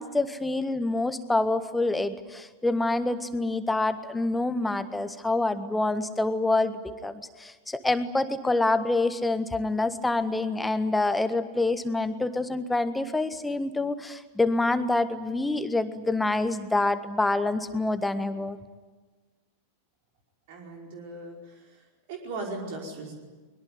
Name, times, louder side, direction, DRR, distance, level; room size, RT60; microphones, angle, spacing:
voice 1, 0.0-18.6, left 2 dB, 5° left, 12 dB, 1.5 m, -26 dB
voice 2, 20.5-21.8 22.1-23.1, right 2 dB, 50° right, 1 dB, 5.1 m, -38 dB
23.5 x 22.5 x 9.7 m, 1.3 s
figure-of-eight pair, 90°, 0 cm